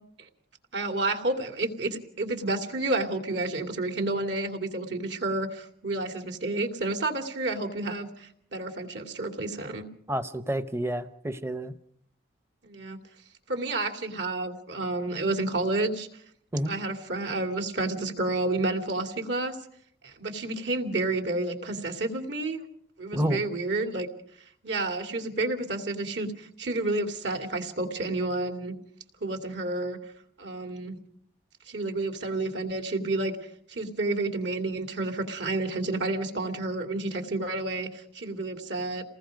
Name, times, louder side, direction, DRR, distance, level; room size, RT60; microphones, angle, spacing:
voice 1, 0.7-9.9 12.6-13.0 13.5-16.1 16.7-19.6 20.0-22.6 23.0-24.1 24.6-28.7 29.2-30.0 30.4-31.0 31.7-33.3 33.7-39.0, right 2 dB, 65° right, 5 dB, 2.7 m, -30 dB
voice 2, 10.1-11.7 16.5-16.7 23.1-23.4, right 1 dB, 15° right, 11 dB, 0.8 m, -29 dB
28.5 x 19.5 x 5.2 m, 0.67 s
head